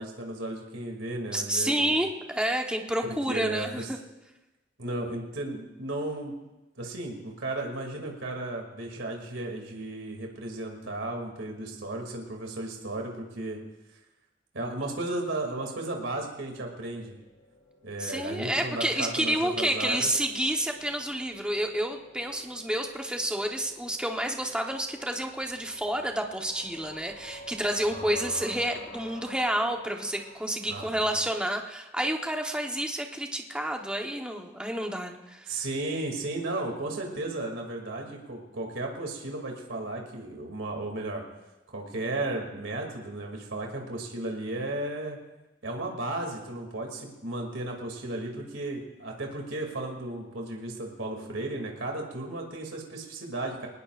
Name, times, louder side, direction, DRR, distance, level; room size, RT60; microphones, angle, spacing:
voice 1, 0.0-2.0 3.0-3.9 4.8-6.3 6.8-13.6 14.5-17.2 17.8-20.1 27.9-28.5 30.7-31.1 35.5-41.2 41.7-45.2 45.6-53.7, right 2 dB, 90° right, 1 dB, 2.6 m, -34 dB
voice 2, 1.3-4.0 18.0-35.6, right 1 dB, 5° right, 2 dB, 1.1 m, -29 dB
sound 1, 16.5-31.5, equal, 70° left, 3.9 m, -50 dB
21.5 x 19.0 x 2.5 m, 1.0 s
head